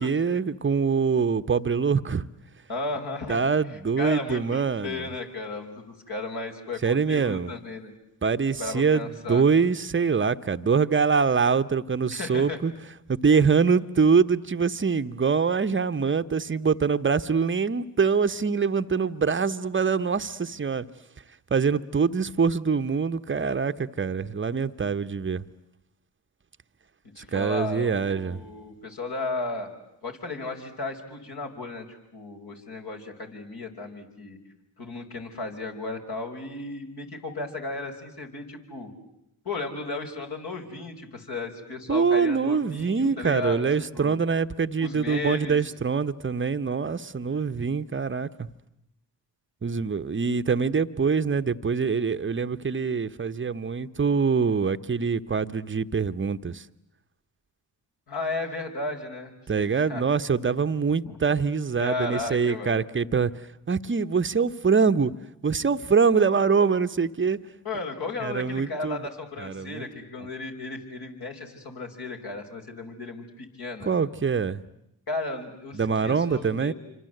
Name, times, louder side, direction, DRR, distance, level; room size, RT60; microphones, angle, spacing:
voice 1, 0.0-2.3 3.3-5.1 6.8-7.5 8.2-12.7 13.1-20.9 21.5-25.4 27.3-28.4 41.9-48.5 49.6-56.6 59.5-63.3 63.7-65.1 65.4-67.4 68.2-69.0 69.4-69.8 73.8-74.6 75.7-76.7, right 5 dB, 25° right, 1.1 m, -24 dB
voice 2, 2.7-3.4 4.0-7.9 8.6-9.4 12.1-12.6 13.3-13.4 27.2-29.7 30.0-34.4 34.8-38.9 39.4-43.7 43.9-44.2 44.8-45.6 58.1-60.0 61.0-61.2 61.8-62.8 67.6-73.9 75.1-76.7, left 3 dB, 55° left, 5.4 m, -34 dB
27.5 x 25.5 x 8.0 m
supercardioid pair, 55°, 45 cm